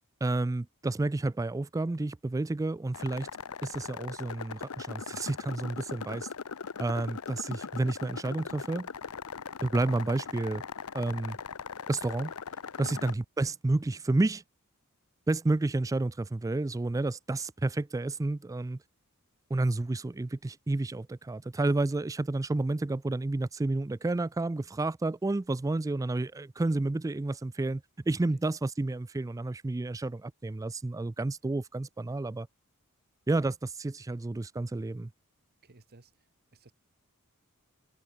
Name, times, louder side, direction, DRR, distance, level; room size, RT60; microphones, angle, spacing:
voice 1, 0.2-3.3 3.6-6.3 6.8-8.9 9.6-10.6 10.9-11.4 11.9-12.3 12.8-14.4 15.3-18.8 19.5-32.5 33.3-35.1, right 2 dB, 15° right, 0.3 m, -30 dB
sound 1, 2.9-13.1, left 6 dB, 80° left, 0.8 m, -40 dB
voice 2, 35.6-36.7, right 2 dB, 45° right, 1.3 m, -56 dB
head